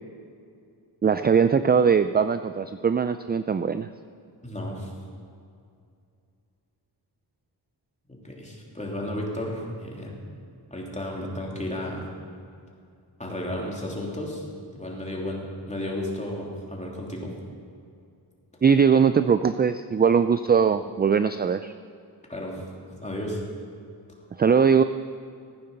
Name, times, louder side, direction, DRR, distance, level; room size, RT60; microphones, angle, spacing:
voice 1, 1.0-3.9 18.6-21.7 24.4-24.8, right 6 dB, 25° right, 11 dB, 0.3 m, -20 dB
voice 2, 4.4-4.9 8.1-10.1 10.7-12.0 13.2-14.5 14.7-17.3 22.3-23.4, left 1 dB, 15° left, -2 dB, 3.2 m, -33 dB
15.0 x 9.3 x 6.7 m, 2.4 s
cardioid pair, 75°, 43 cm